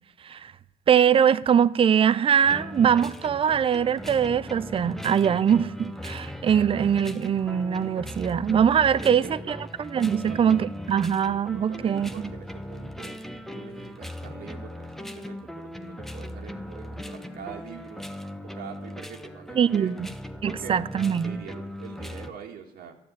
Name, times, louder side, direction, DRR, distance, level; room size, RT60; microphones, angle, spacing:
voice 1, 0.9-12.3 19.6-20.1 20.4-21.4, right 8 dB, 35° right, 0.6 m, -22 dB
sound 1, 2.4-22.3, left 1 dB, ahead, 0.9 m, -38 dB
voice 2, 9.2-9.8 10.1-10.4 11.5-13.2 13.5-18.0 18.4-19.9 20.4-20.8 21.2-23.0, right 8 dB, 65° right, 1.8 m, -44 dB
12.5 x 9.6 x 8.0 m
cardioid pair, 110°, 17 cm